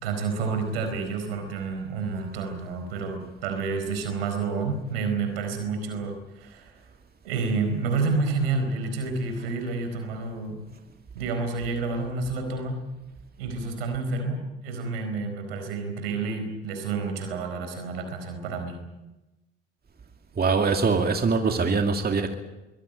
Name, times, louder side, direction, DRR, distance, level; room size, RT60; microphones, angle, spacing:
voice 1, 0.0-6.8 7.2-10.6 11.1-12.8 13.4-18.8, right 4 dB, 80° right, 6 dB, 4.5 m, -29 dB
voice 2, 20.4-22.3, right 4 dB, 30° right, 5 dB, 2.4 m, -23 dB
23.0 x 17.0 x 9.1 m, 1.0 s
hypercardioid pair, 55°, 29 cm